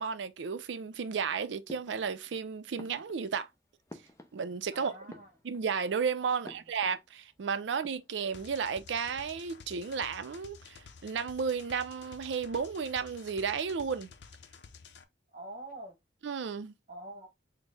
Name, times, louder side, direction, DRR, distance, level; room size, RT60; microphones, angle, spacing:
voice 1, 0.0-3.5 4.3-4.9 5.4-14.1 16.2-16.7, right 6 dB, 90° right, 0.4 m, -33 dB
sound 1, 1.7-2.4 2.7-4.7 5.0-5.8 6.4-7.4 7.7-8.2, left 1 dB, 15° left, 0.4 m, -52 dB
voice 2, 4.7-5.3 6.6-6.7 15.3-16.0 16.9-17.3, right 1 dB, 40° right, 1.0 m, -45 dB
sound 2, 8.3-15.0, left 5 dB, 75° left, 0.5 m, -52 dB
4.3 x 2.1 x 3.3 m
head